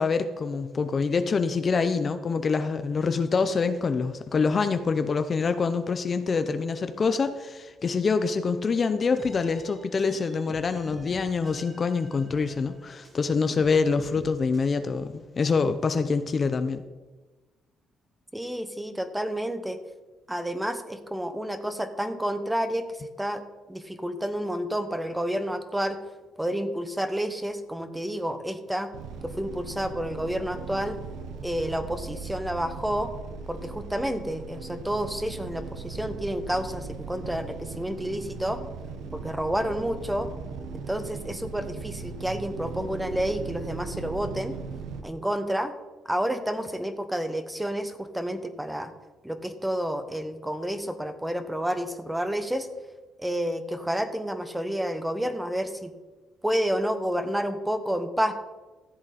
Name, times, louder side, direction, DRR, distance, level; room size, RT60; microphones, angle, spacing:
voice 1, 0.0-16.8, left 4 dB, 40° left, 9 dB, 0.7 m, -25 dB
sound 1, 9.2-13.3 13.6-14.6, right 2 dB, 30° right, 2.2 m, -48 dB
voice 2, 18.3-19.8 20.3-22.8 23.2-23.4 23.7-26.0 26.4-28.9 29.2-31.0 31.4-33.1 33.5-38.6 39.1-40.3 40.7-44.5 45.0-45.7 46.1-48.9 49.2-52.7 53.2-55.9 56.4-58.3, equal, 5° right, 10 dB, 1.0 m, -30 dB
sound 2, 28.9-45.0, right 4 dB, 90° right, 1.1 m, -38 dB
14.0 x 8.0 x 4.2 m, 1.2 s
cardioid pair, 90°, 0 cm